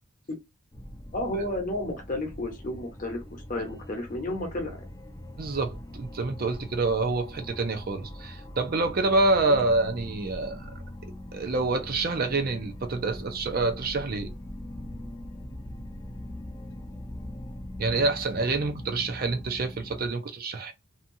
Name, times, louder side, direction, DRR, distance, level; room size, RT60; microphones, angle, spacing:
sound 1, 0.7-20.1, left 1 dB, 15° left, 0.5 m, -41 dB
voice 1, 1.1-4.8 9.4-9.6, left 1 dB, 40° left, 0.8 m, -32 dB
voice 2, 5.4-10.7 11.3-14.3 17.8-20.7, right 3 dB, 45° right, 0.5 m, -27 dB
2.7 x 2.3 x 2.6 m
head